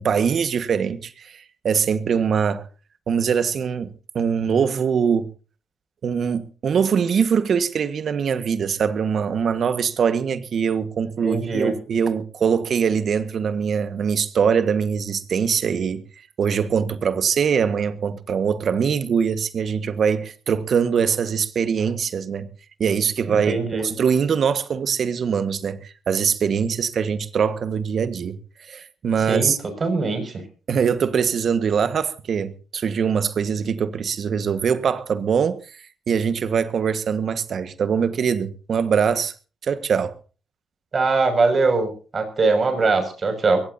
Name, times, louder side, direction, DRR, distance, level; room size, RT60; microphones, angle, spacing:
voice 1, 0.0-2.6 3.1-5.3 6.0-16.0 16.4-22.5 22.8-28.4 28.7-29.6 30.7-35.6 36.1-39.3 39.6-40.1, right 7 dB, 55° right, 1.6 m, -22 dB
voice 2, 11.2-11.7 23.3-23.9 29.3-29.5 29.8-30.4 40.9-43.6, right 3 dB, 40° right, 6.3 m, -21 dB
22.5 x 17.5 x 2.8 m
cardioid pair, 90°, 0 cm